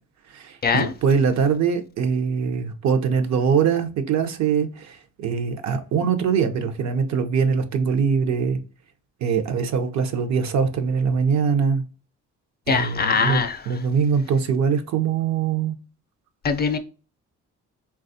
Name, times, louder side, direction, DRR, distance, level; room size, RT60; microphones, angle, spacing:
voice 1, 0.3-8.6 9.2-11.8 12.7-15.8, right 6 dB, 65° right, 0.6 m, -22 dB
voice 2, 12.7-13.6 16.4-16.8, left 5 dB, 35° left, 0.4 m, -22 dB
3.3 x 2.3 x 2.6 m
cardioid pair, 90°, 30 cm